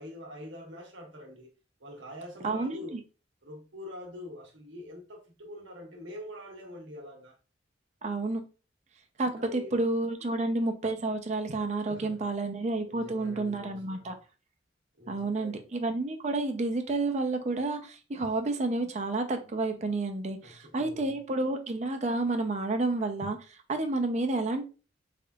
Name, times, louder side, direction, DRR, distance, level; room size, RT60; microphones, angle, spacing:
voice 1, 0.0-1.5 1.8-2.9 3.4-7.4 9.4-9.9 10.2-10.5 11.8-12.3 12.8-14.1 15.0-15.6 20.4-21.0, left 1 dB, 85° right, 1.2 m, -45 dB
voice 2, 2.4-3.0 8.0-8.4 9.2-14.2 15.1-24.6, right 2 dB, 40° right, 0.5 m, -30 dB
3.7 x 3.5 x 2.3 m
head